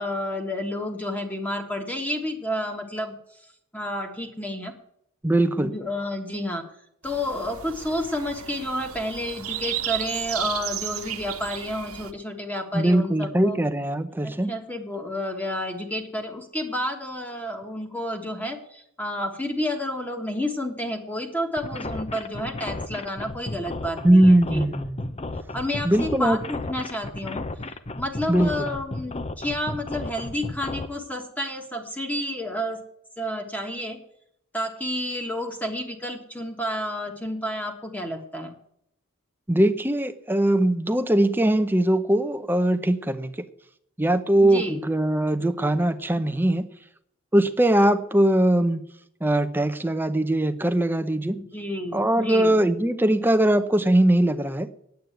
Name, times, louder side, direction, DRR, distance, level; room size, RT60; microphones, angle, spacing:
voice 1, 0.0-3.1 3.7-4.7 5.6-6.6 7.0-13.6 14.2-24.6 25.5-27.5 27.9-32.8 33.2-34.0 34.5-38.6 44.4-44.8 51.3-52.6, left 1 dB, 5° left, 3 dB, 1.4 m, -30 dB
voice 2, 5.2-5.7 12.7-14.5 24.0-25.0 25.8-26.4 28.3-28.5 39.5-43.3 44.0-46.7 47.3-48.8 49.2-51.4 51.9-54.7, right 1 dB, 10° right, 10 dB, 0.6 m, -21 dB
sound 1, 7.0-12.1, right 11 dB, 85° right, 1.1 m, -34 dB
sound 2, 21.6-30.9, left 2 dB, 30° left, 0.7 m, -33 dB
9.3 x 8.7 x 7.9 m, 0.73 s
head